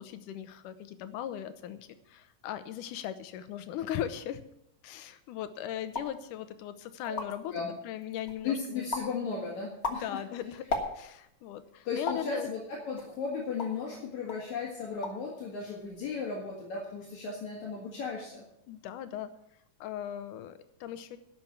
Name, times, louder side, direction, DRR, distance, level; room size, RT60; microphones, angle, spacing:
voice 1, 0.0-4.4 4.8-7.5 7.8-8.9 9.9-10.7 10.9-12.5 18.7-19.3 19.8-21.2, left 10 dB, 85° left, 11 dB, 2.4 m, -38 dB
sound 1, 5.9-6.2 6.7-6.8 7.0-7.5 8.0-8.5 8.9-9.2 9.6-11.3 12.1-12.3 13.0-13.9 14.3-14.5 14.8-15.3 15.6-16.1, left 3 dB, 50° left, 0.8 m, -36 dB
voice 2, 8.4-10.2 11.9-18.4, left 5 dB, 65° left, -3 dB, 3.2 m, -35 dB
11.5 x 6.8 x 8.6 m, 0.77 s
omnidirectional pair, 3.6 m